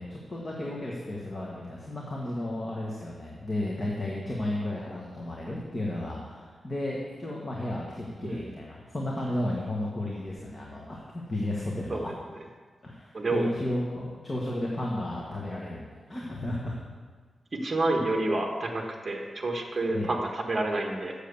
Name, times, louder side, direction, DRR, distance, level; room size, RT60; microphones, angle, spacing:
voice 1, 0.0-12.1 12.8-16.8 19.9-20.1, left 1 dB, 25° left, -3 dB, 1.2 m, -33 dB
voice 2, 8.2-8.5 11.9-12.0 13.1-13.5 17.6-21.1, right 2 dB, 25° right, 1 dB, 1.2 m, -29 dB
7.4 x 6.6 x 6.8 m, 1.5 s
wide cardioid pair, 150°, 0 cm